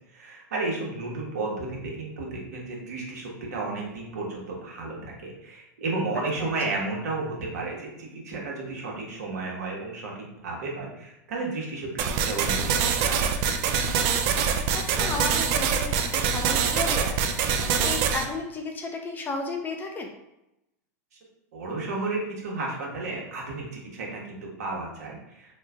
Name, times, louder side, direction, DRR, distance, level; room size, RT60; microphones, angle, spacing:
voice 1, 0.0-13.3 21.5-25.6, right 3 dB, 75° right, -2 dB, 1.1 m, -33 dB
sound 1, 12.0-18.3, right 6 dB, 50° right, 0.4 m, -24 dB
voice 2, 14.5-20.1, left 3 dB, 20° left, 3 dB, 0.4 m, -34 dB
3.0 x 2.2 x 3.5 m, 0.88 s
hypercardioid pair, 115°, 9 cm